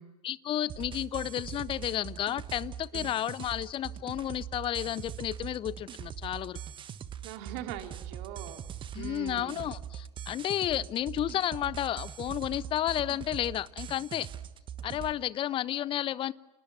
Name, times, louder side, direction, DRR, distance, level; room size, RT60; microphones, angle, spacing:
voice 1, 0.2-6.6 8.9-14.3 14.8-16.3, left 12 dB, 25° left, 20 dB, 0.8 m, -32 dB
sound 1, 0.7-15.1, right 9 dB, 25° right, 1.4 m, -42 dB
voice 2, 7.2-8.6 8.9-9.7, right 11 dB, 45° right, 6 dB, 3.2 m, -41 dB
30.0 x 28.0 x 6.2 m, 1.1 s
figure-of-eight pair, 90°, 20 cm